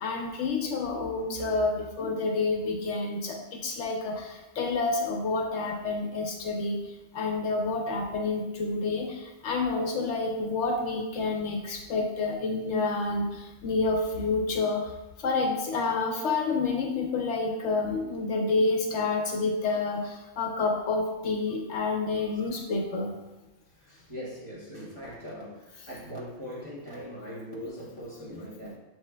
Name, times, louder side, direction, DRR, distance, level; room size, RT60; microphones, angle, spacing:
voice 1, 0.0-6.8 7.1-14.9 15.2-23.1, left 3 dB, 70° left, 2 dB, 0.8 m, -29 dB
voice 2, 23.8-28.8, equal, 25° right, -7 dB, 1.0 m, -41 dB
7.2 x 3.1 x 2.2 m, 1.0 s
omnidirectional pair, 1.3 m